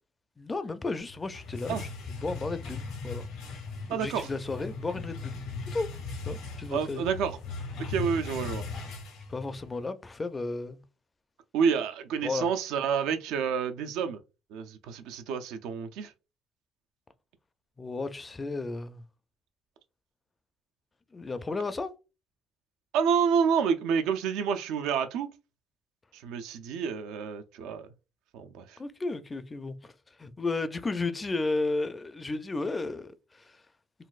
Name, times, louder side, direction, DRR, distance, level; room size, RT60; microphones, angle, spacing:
voice 1, 0.4-3.3 3.9-5.4 5.7-5.9 6.3-7.0 9.3-10.8 12.2-12.5 17.8-19.0 21.1-21.9 28.8-29.9 30.2-33.6, left 3 dB, 20° left, 0.4 m, -33 dB
sound 1, 1.1-9.8, left 4 dB, 90° left, 1.6 m, -38 dB
voice 2, 3.9-4.3 6.7-7.4 7.8-8.6 11.5-14.2 14.5-16.1 22.9-25.3 26.1-27.8 28.3-28.8, right 7 dB, 85° right, 0.4 m, -29 dB
4.0 x 2.2 x 2.4 m
cardioid pair, 105°, 0 cm